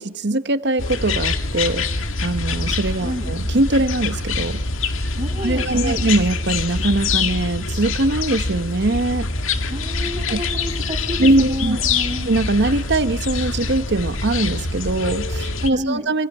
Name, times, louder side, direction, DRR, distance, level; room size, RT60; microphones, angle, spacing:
voice 1, 0.0-1.8 2.2-4.6 5.4-9.3 10.3-10.4 11.2-11.8 12.3-16.3, right 2 dB, 60° right, 12 dB, 1.2 m, -21 dB
sound 1, 0.8-15.7, left 3 dB, 80° left, 1.9 m, -25 dB
voice 2, 5.2-6.0 9.7-12.3 15.7-16.1, equal, 25° right, 3 dB, 6.7 m, -29 dB
26.5 x 26.0 x 4.4 m, 0.83 s
head